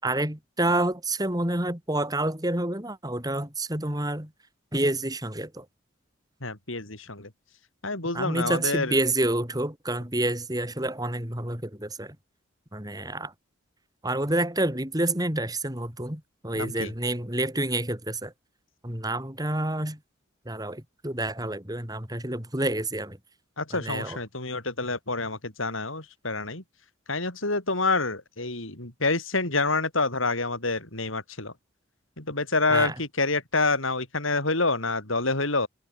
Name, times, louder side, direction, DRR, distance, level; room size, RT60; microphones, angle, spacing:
voice 1, 0.0-4.3 4.7-5.6 8.1-12.2 12.7-13.3 14.0-18.3 18.8-20.0 20.5-23.2 23.7-24.2 32.7-32.9, right 1 dB, 20° right, 4.5 m, -28 dB
voice 2, 6.4-7.3 7.8-8.9 16.6-16.9 23.6-26.6 27.1-31.5 32.2-35.7, left 3 dB, 80° left, 6.6 m, -27 dB
head